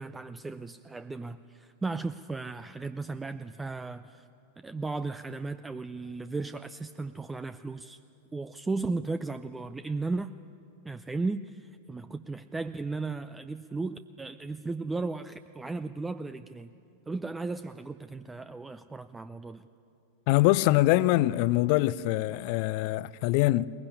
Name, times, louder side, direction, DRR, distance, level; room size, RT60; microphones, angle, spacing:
voice 1, 0.0-4.2 4.6-8.0 8.3-10.3 10.8-16.7 17.1-19.7, right 3 dB, 10° right, 0.5 m, -35 dB
voice 2, 20.3-23.7, left 17 dB, 45° left, 0.5 m, -24 dB
21.5 x 20.5 x 9.7 m
figure-of-eight pair, 90°, 0 cm